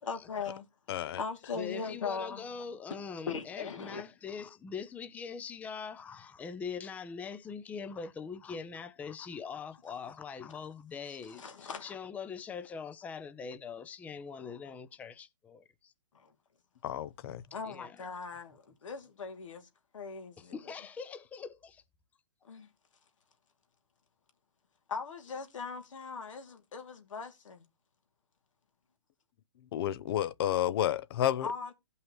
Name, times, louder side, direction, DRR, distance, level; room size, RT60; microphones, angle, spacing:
voice 1, 0.0-2.4 3.3-4.0 11.3-11.9 16.1-16.3 17.5-19.7 19.9-20.7 22.4-22.7 24.9-27.6 31.4-31.7, left 5 dB, 75° left, 2.7 m, -40 dB
voice 2, 0.9-1.2 16.8-17.4 29.7-31.5, left 11 dB, 50° left, 0.6 m, -31 dB
voice 3, 1.5-15.9 17.3-18.0 20.4-21.8, left 6 dB, 10° left, 0.6 m, -42 dB
16.5 x 5.6 x 3.1 m
hypercardioid pair, 140°, 16 cm